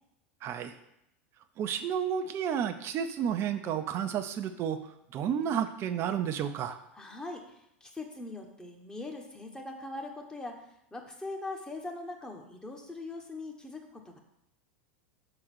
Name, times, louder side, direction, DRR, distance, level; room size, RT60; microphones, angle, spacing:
voice 1, 0.4-0.7 1.6-4.8 5.1-6.8, right 8 dB, 40° right, 9 dB, 0.6 m, -31 dB
voice 2, 6.9-10.6 10.9-14.2, left 2 dB, 10° left, 2 dB, 1.3 m, -41 dB
6.4 x 3.9 x 6.2 m, 0.80 s
hypercardioid pair, 90°, 6 cm